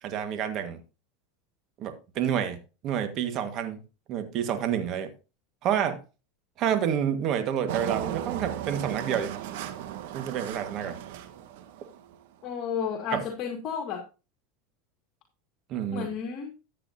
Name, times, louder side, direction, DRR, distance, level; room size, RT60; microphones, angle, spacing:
voice 1, 0.0-0.8 1.8-2.6 2.8-3.8 4.1-5.1 5.6-6.0 6.6-9.3 10.1-10.9 13.1-13.2 15.7-16.1, right 9 dB, 45° right, 1.7 m, -28 dB
Engine, 7.7-12.2, right 11 dB, 70° right, 1.3 m, -36 dB
voice 2, 12.4-14.0 15.9-16.5, left 7 dB, 45° left, 2.1 m, -32 dB
13.5 x 8.6 x 2.8 m
supercardioid pair, 110°, 0 cm